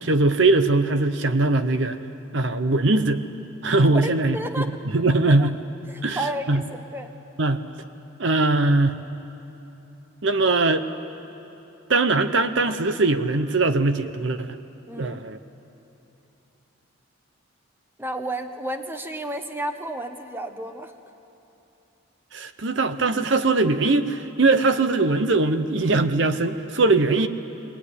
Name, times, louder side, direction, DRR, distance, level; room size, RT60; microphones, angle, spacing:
voice 1, 0.0-2.0 2.3-3.2 3.6-5.6 6.0-6.6 7.4-7.6 8.2-9.0 10.2-10.8 11.9-14.5 15.0-15.4 22.3-27.3, right 3 dB, 60° right, 10 dB, 0.8 m, -21 dB
voice 2, 3.9-4.7 5.4-5.5 5.9-7.1 14.9-15.2 18.0-20.9, right 1 dB, 10° right, 6 dB, 1.1 m, -32 dB
25.0 x 19.5 x 9.8 m, 3.0 s
head